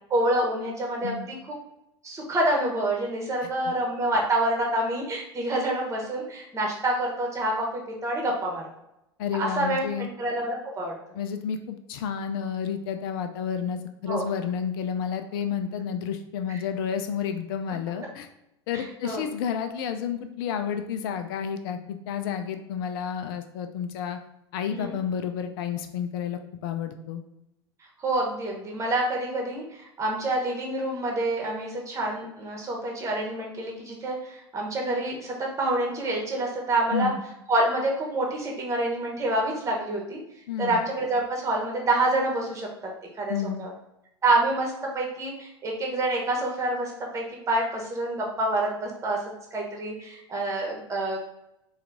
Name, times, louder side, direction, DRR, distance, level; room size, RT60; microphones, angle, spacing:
voice 1, 0.1-1.4 2.0-8.6 9.3-11.0 14.1-14.3 16.5-16.6 18.7-19.3 24.7-24.9 28.0-37.1 37.5-40.2 40.6-42.7 43.2-43.7 44.2-49.2 49.5-51.2, right 1 dB, 20° right, 0 dB, 1.2 m, -27 dB
voice 2, 9.2-10.1 11.1-18.3 18.7-24.2 24.5-27.2 36.9-37.2 40.5-40.8 43.3-43.7, left 7 dB, 55° left, 8 dB, 0.5 m, -30 dB
4.3 x 2.4 x 3.7 m, 0.87 s
figure-of-eight pair, 80°, 14 cm